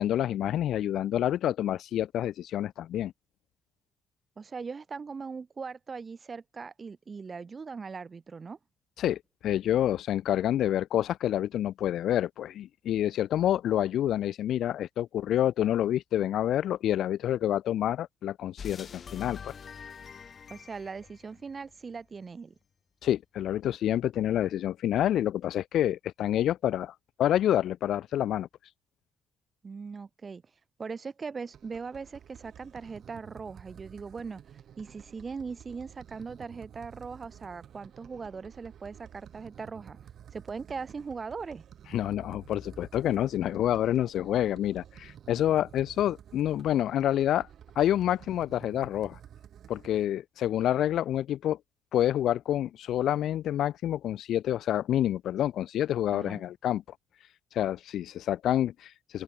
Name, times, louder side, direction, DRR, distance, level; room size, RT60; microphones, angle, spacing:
voice 1, 0.0-3.1 9.0-19.5 23.0-26.9 27.2-28.5 41.9-47.5 47.8-49.2 49.7-51.6 51.9-56.8 57.5-59.2, left 11 dB, 75° left, 0.5 m, -28 dB
voice 2, 4.4-8.6 20.5-22.5 29.6-30.4 30.8-34.4 34.8-40.0 40.3-41.6 56.1-56.4, right 5 dB, 35° right, 3.9 m, -40 dB
sound 1, 18.6-22.0, left 6 dB, 45° left, 4.1 m, -45 dB
sound 2, 31.5-50.0, right 9 dB, 65° right, 2.6 m, -51 dB
open air
cardioid pair, 90°, 0 cm